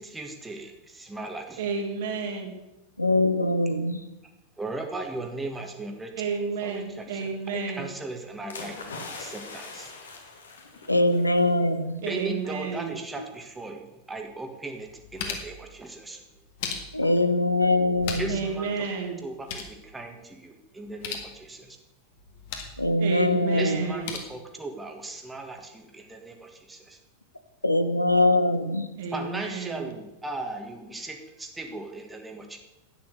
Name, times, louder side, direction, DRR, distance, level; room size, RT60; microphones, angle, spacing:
voice 1, 0.0-1.7 4.2-4.3 4.6-6.3 6.6-8.8 9.1-9.9 12.1-16.2 18.2-18.8 19.2-21.8 23.6-27.0 29.1-32.6, right 2 dB, 10° right, 4 dB, 1.7 m, -37 dB
voice 2, 1.6-2.5 6.2-7.9 12.0-13.0 18.3-19.2 23.0-24.2 29.0-29.9, right 5 dB, 55° right, 3 dB, 2.5 m, -31 dB
voice 3, 3.0-4.0 10.9-12.0 16.9-18.4 22.8-23.9 27.6-28.9, left 1 dB, 85° left, 10 dB, 1.0 m, -22 dB
sound 1, 8.5-11.5 11.8-12.1, left 3 dB, 70° left, 2.1 m, -41 dB
sound 2, 14.2-14.3 14.7-15.6 16.3-17.2 17.8-18.5 18.8-18.9 19.2-19.8 20.8-21.3 22.2-22.8 23.8-24.2, left 6 dB, 50° left, 1.9 m, -37 dB
11.0 x 9.4 x 6.8 m, 0.96 s
figure-of-eight pair, 90°, 0 cm